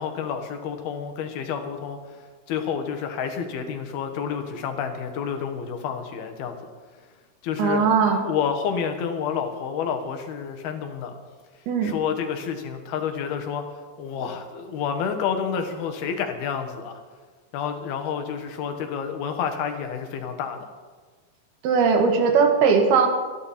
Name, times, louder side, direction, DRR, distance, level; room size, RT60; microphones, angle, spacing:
voice 1, 0.0-2.2 2.5-6.7 7.4-8.0 8.2-11.2 11.8-13.7 14.0-17.0 17.5-20.7, left 7 dB, 80° left, 6 dB, 3.3 m, -29 dB
voice 2, 7.6-8.2 11.7-11.9 21.6-23.1, right 5 dB, 85° right, 4 dB, 3.6 m, -19 dB
26.5 x 11.0 x 4.3 m, 1.4 s
omnidirectional pair, 4.4 m